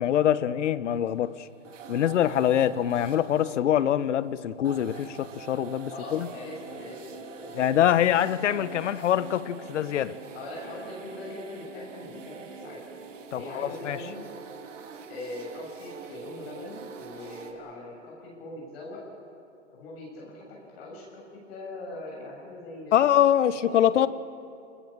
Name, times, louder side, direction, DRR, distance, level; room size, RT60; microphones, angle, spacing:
voice 1, 0.0-1.5 1.9-6.3 7.5-10.1 13.3-14.0 22.9-24.1, left 10 dB, 70° left, 1.1 m, -24 dB
sound 1, 0.9-17.5, right 5 dB, 80° right, 3.4 m, -44 dB
voice 2, 5.9-7.8 10.3-12.8 13.3-14.2 15.1-19.0 19.7-23.0 23.6-24.1, left 2 dB, 55° left, 7.7 m, -41 dB
26.5 x 20.5 x 7.4 m
hypercardioid pair, 145°, 37 cm